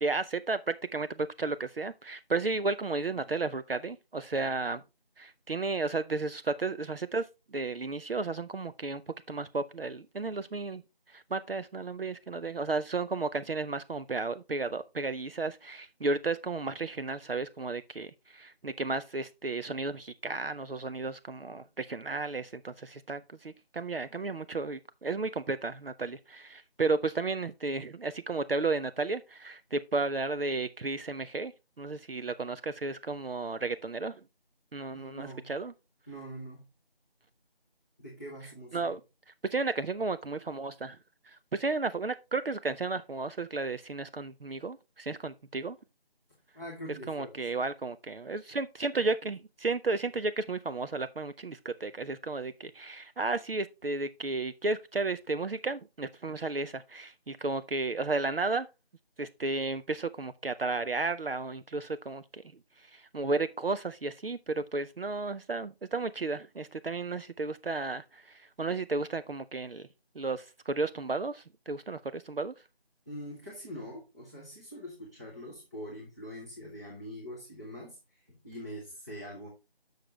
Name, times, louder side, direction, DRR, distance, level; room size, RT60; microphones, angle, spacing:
voice 1, 0.0-4.8 5.2-7.3 7.5-9.0 9.3-10.8 11.1-31.5 31.8-34.2 34.7-35.7 38.7-39.0 39.5-41.0 41.3-45.8 47.1-58.7 59.2-62.4 62.8-69.9 70.2-72.5, right 3 dB, 70° right, 0.6 m, -33 dB
voice 2, 34.9-35.5 36.1-36.6 38.0-38.9 46.5-47.3 73.0-79.5, equal, 15° right, 1.5 m, -44 dB
8.0 x 6.5 x 3.3 m
figure-of-eight pair, 170°, 30 cm